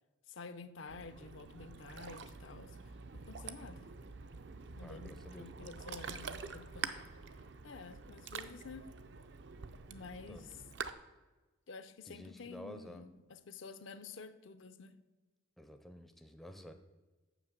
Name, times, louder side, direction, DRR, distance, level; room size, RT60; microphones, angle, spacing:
voice 1, 0.3-2.8 3.1-3.9 4.8-7.0 7.6-8.9 9.9-10.6 11.7-15.0, left 4 dB, 70° left, 0.5 m, -50 dB
Ocean, 0.9-10.9, right 5 dB, 55° right, 0.5 m, -47 dB
voice 2, 4.8-5.7 10.3-10.5 12.0-13.0 15.6-16.7, equal, ahead, 0.4 m, -51 dB
7.3 x 6.1 x 6.5 m
head